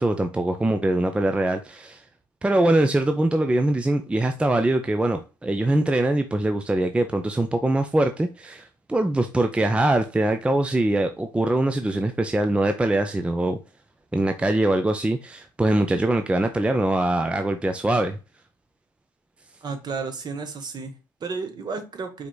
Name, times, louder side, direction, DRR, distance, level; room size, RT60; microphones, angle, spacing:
voice 1, 0.0-2.0 2.4-13.6 14.1-18.2, right 1 dB, 10° right, 0.4 m, -23 dB
voice 2, 19.6-22.3, right 4 dB, 40° right, 1.0 m, -32 dB
4.9 x 3.3 x 2.3 m
figure-of-eight pair, 50°, 11 cm